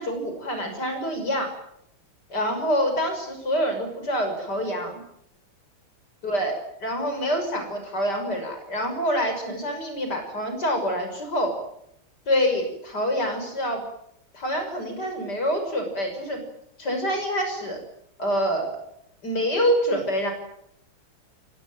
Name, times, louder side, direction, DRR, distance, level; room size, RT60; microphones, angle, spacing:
voice 1, 0.0-1.5 2.3-5.0 6.2-11.6 12.3-13.8 14.3-16.4 16.8-17.8 18.2-18.7 19.2-20.3, equal, 55° left, 6 dB, 6.6 m, -26 dB
29.5 x 17.5 x 9.1 m, 0.78 s
omnidirectional pair, 2.1 m